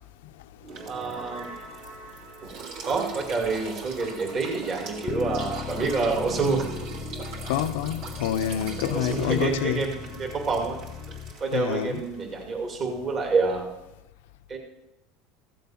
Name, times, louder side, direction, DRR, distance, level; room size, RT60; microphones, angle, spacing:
sound 1, 0.6-12.5, right 3 dB, 55° right, 3.1 m, -43 dB
voice 1, 0.9-1.5 2.4-6.7 8.9-10.8 11.4-13.7 14.5-14.6, right 4 dB, 35° right, 2.4 m, -28 dB
sound 2, 2.4-9.6, right 4 dB, 75° right, 3.3 m, -40 dB
Bass guitar, 5.1-11.3, left 9 dB, 35° left, 0.5 m, -38 dB
voice 2, 7.5-9.8 11.5-12.0, left 11 dB, 90° left, 0.6 m, -27 dB
15.0 x 7.7 x 5.8 m
supercardioid pair, 140°, 0 cm